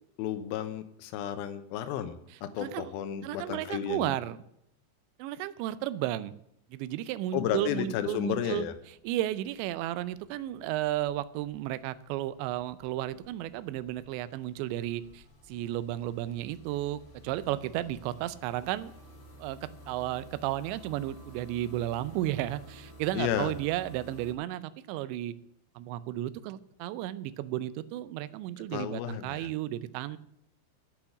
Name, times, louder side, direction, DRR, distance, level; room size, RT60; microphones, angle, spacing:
voice 1, 0.2-4.1 7.3-8.7 23.1-23.5 28.7-29.5, left 10 dB, 80° left, 9 dB, 2.2 m, -32 dB
voice 2, 2.6-2.9 3.2-4.4 5.2-6.3 6.7-8.7 9.0-18.9 19.4-25.3 25.8-30.2, right 14 dB, 80° right, 15 dB, 2.8 m, -33 dB
sound 1, 8.6-24.3, equal, 45° left, 1.5 m, -53 dB
8.7 x 8.4 x 8.2 m, 0.76 s
omnidirectional pair, 5.3 m